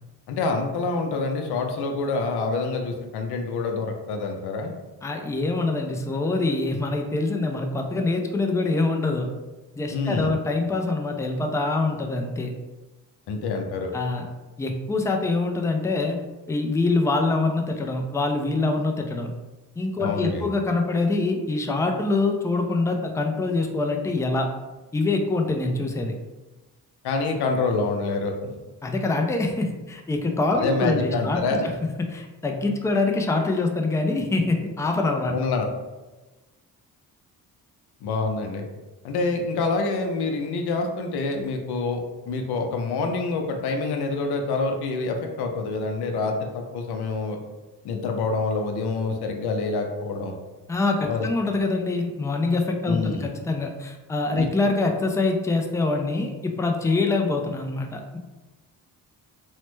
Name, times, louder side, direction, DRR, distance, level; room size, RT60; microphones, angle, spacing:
voice 1, 0.3-4.7 9.9-10.4 13.3-13.9 20.0-20.5 27.0-28.6 30.5-31.7 35.3-35.7 38.0-38.7 39.0-42.0 42.3-47.4 47.8-50.4 51.0-51.3 52.9-53.3 54.4-54.5, left 3 dB, 65° left, 3 dB, 0.6 m, -26 dB
voice 2, 5.0-9.3 9.8-12.5 13.9-14.2 14.6-16.2 16.5-19.3 19.8-24.5 24.9-26.2 28.8-31.6 32.1-35.3 50.7-58.2, left 3 dB, 10° left, 3 dB, 0.3 m, -24 dB
3.1 x 2.1 x 3.1 m, 1.1 s
cardioid pair, 70°, 41 cm